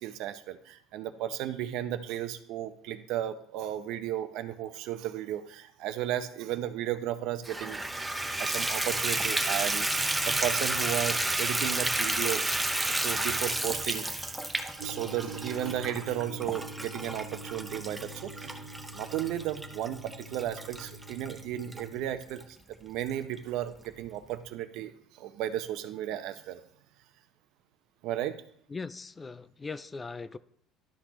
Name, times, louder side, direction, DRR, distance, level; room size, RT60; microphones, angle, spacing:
voice 1, 0.0-7.8 8.4-12.4 13.0-14.1 14.8-18.5 18.9-26.6 28.0-28.3, right 12 dB, 70° right, 0.7 m, -34 dB
Water tap faucet / Bathtub (filling or washing), 7.4-21.8 22.4-22.5 23.0-23.1 23.4-23.5, right 2 dB, 10° right, 0.7 m, -31 dB
sound 1, 14.8-22.0, right 2 dB, 90° right, 1.0 m, -45 dB
voice 2, 28.7-30.4, left 4 dB, 20° left, 0.3 m, -39 dB
11.5 x 6.1 x 3.0 m
cardioid pair, 115°, 0 cm